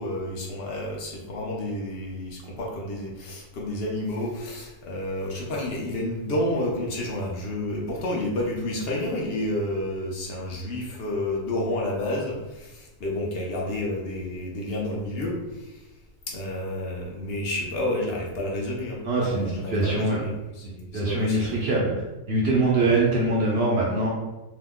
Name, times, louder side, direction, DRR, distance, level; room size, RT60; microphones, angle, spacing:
voice 1, 0.0-15.9 16.3-21.6 22.8-23.0, left 1 dB, 55° left, -2 dB, 0.8 m, -30 dB
voice 2, 19.0-20.2 20.9-21.9 22.3-24.1, right 2 dB, 60° right, -4 dB, 0.7 m, -23 dB
2.8 x 2.1 x 3.5 m, 1.0 s
omnidirectional pair, 1.5 m